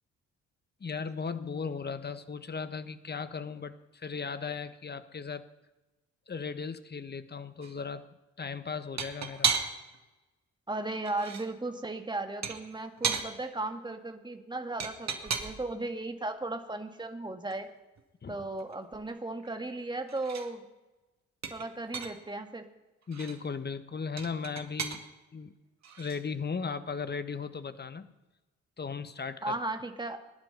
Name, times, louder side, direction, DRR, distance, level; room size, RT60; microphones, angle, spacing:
voice 1, 0.8-5.5 6.3-8.1 8.4-9.5 18.2-18.4 23.1-25.0 25.3-25.5 26.0-28.1 28.8-29.6, left 5 dB, 30° left, 11 dB, 1.3 m, -37 dB
sound 1, 7.6-7.7 9.0-10.0 10.9-11.5 12.4-13.3 14.8-15.7 17.5-17.6 18.0-18.1 18.3-19.8 20.1-20.5 21.4-22.3 23.0-23.4 24.2-25.0 25.8-26.2, right 6 dB, 50° right, 2.1 m, -34 dB
voice 2, 10.7-17.7 18.3-20.7 21.5-22.7 29.4-30.2, right 2 dB, 15° right, 6 dB, 2.0 m, -36 dB
21.0 x 11.0 x 5.6 m, 1.1 s
hypercardioid pair, 45°, 35 cm